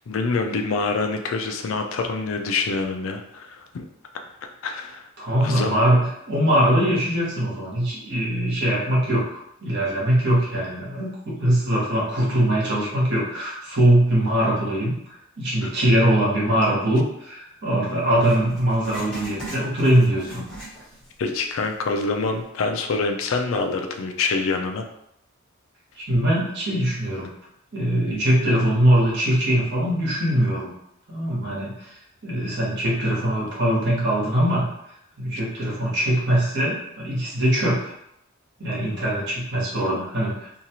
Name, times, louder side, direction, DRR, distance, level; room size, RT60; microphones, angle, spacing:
voice 1, 0.1-3.8 4.6-5.0 5.4-5.7 15.6-15.7 21.2-24.8, left 4 dB, 65° left, 4 dB, 0.4 m, -26 dB
voice 2, 5.2-9.2 9.6-20.4 26.0-27.3 27.7-30.7 31.1-31.9 32.2-34.7 35.2-37.9 38.6-40.6, right 1 dB, 60° right, -5 dB, 1.2 m, -22 dB
Writing, 18.2-21.2 21.5-21.6 22.3-22.4, right 2 dB, 5° left, 1.2 m, -39 dB
2.7 x 2.3 x 2.8 m, 0.77 s
head